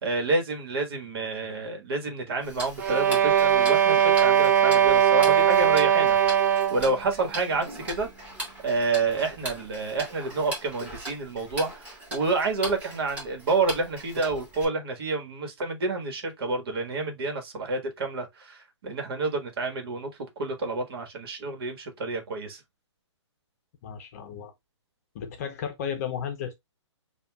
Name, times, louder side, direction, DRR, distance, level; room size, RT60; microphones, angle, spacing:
voice 1, 0.0-6.2 6.7-8.1 8.6-20.1 20.4-22.6, right 3 dB, 50° right, 1.6 m, -29 dB
Tick-tock, 2.4-14.6, right 1 dB, 10° right, 1.6 m, -40 dB
sound 1, 2.8-6.9, right 9 dB, 35° right, 0.5 m, -20 dB
voice 2, 23.8-24.5 25.1-26.5, left 8 dB, 30° left, 0.7 m, -34 dB
6.7 x 2.5 x 2.3 m
hypercardioid pair, 160°, 16 cm